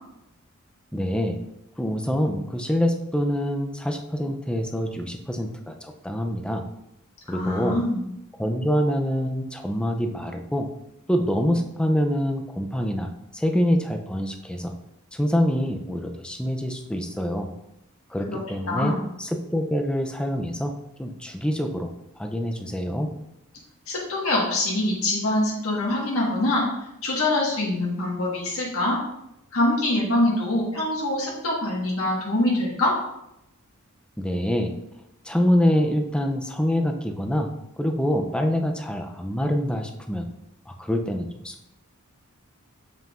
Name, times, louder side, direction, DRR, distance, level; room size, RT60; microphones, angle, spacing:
voice 1, 0.9-1.4 1.8-6.7 7.3-7.8 8.4-10.7 11.1-14.7 15.1-17.5 18.1-21.9 22.2-23.1 34.2-34.8 35.3-37.5 37.8-40.3 40.7-41.7, equal, 5° left, 4 dB, 0.5 m, -25 dB
voice 2, 7.3-8.0 18.3-18.4 18.7-19.0 23.9-29.0 29.5-32.9, left 1 dB, 75° left, -4 dB, 1.6 m, -24 dB
7.2 x 5.3 x 2.5 m, 0.85 s
head